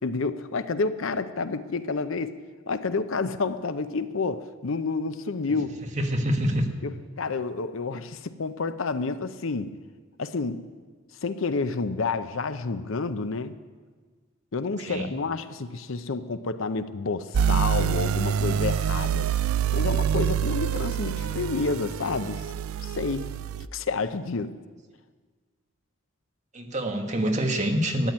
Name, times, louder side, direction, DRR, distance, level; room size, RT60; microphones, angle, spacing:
voice 1, 0.0-2.4 2.7-5.8 6.8-6.9 7.2-9.8 10.2-10.6 11.2-13.6 14.5-19.3 19.7-22.5 22.8-23.3 23.7-24.6, left 4 dB, 70° left, 0.7 m, -29 dB
voice 2, 6.0-6.7 14.9-15.1 26.5-28.1, equal, 35° right, 1.4 m, -26 dB
sound 1, 17.3-23.7, right 8 dB, 85° right, 0.4 m, -26 dB
13.0 x 9.1 x 9.5 m
head